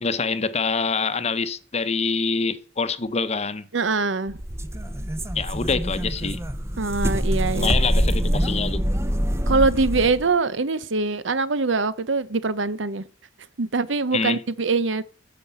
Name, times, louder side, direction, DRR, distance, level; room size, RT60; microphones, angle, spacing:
voice 1, 0.0-3.7 5.3-6.4 7.5-8.8 14.1-14.4, left 4 dB, 35° left, 0.8 m, -25 dB
voice 2, 3.7-4.4 6.8-7.7 9.5-13.1 13.6-15.0, right 3 dB, 85° right, 0.8 m, -23 dB
sound 1, 4.3-10.2, equal, 15° right, 0.8 m, -25 dB
15.0 x 5.3 x 6.9 m
head